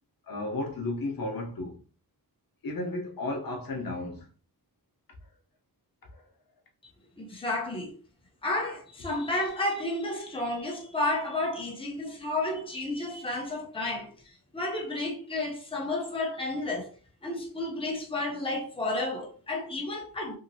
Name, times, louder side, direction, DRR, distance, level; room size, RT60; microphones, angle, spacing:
voice 1, 0.3-1.8 2.6-4.3 6.1-6.2, left 2 dB, 70° left, 0.8 m, -33 dB
voice 2, 7.2-7.9 8.4-14.1 14.5-16.9 17.2-20.4, left 2 dB, 15° left, 0.7 m, -31 dB
2.9 x 2.7 x 2.7 m
wide cardioid pair, 115°, 36 cm